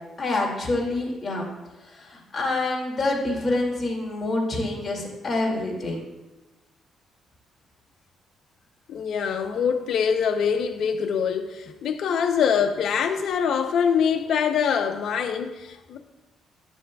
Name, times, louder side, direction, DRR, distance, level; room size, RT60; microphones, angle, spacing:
voice 1, 0.2-1.5 1.8-6.0, left 2 dB, 30° left, 2.3 m, -27 dB
voice 2, 8.9-16.0, left 7 dB, 70° left, 0.7 m, -24 dB
12.0 x 7.0 x 2.3 m
cardioid pair, 95°, 0 cm